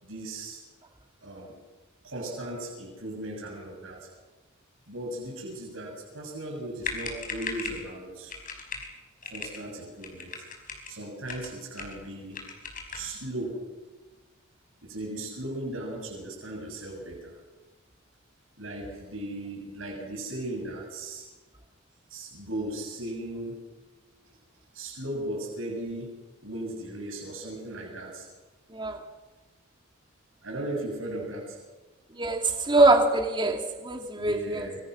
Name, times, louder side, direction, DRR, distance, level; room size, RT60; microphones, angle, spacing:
voice 1, 0.0-0.6 1.2-1.5 2.0-4.1 4.9-8.3 9.2-10.3 10.9-12.4 12.9-13.6 14.8-17.4 18.6-21.2 22.1-23.6 24.7-26.1 26.4-28.3 30.4-31.6 34.1-34.8, right 1 dB, 70° right, 0 dB, 7.1 m, -37 dB
sound 1, 6.6-6.7 6.8-7.9 8.3-8.9 9.2-9.6 10.0-10.9 11.3-12.0 12.3-13.1, left 5 dB, 40° left, 5.1 m, -37 dB
voice 2, 32.2-34.7, right 2 dB, 25° right, 4 dB, 2.7 m, -23 dB
26.0 x 25.0 x 6.4 m, 1.2 s
head